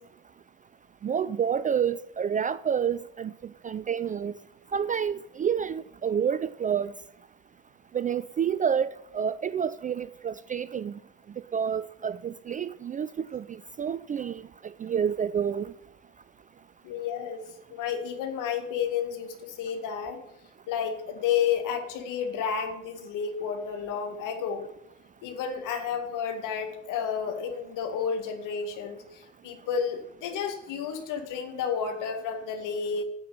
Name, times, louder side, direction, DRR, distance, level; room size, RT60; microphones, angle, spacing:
voice 1, 1.0-4.4 4.7-6.9 7.9-11.0 11.5-14.4 14.8-15.7, right 7 dB, 25° right, 0.4 m, -29 dB
voice 2, 16.8-20.2 20.7-24.6 25.2-33.0, left 7 dB, 60° left, 2.1 m, -31 dB
10.0 x 8.3 x 5.3 m
hypercardioid pair, 65°, 36 cm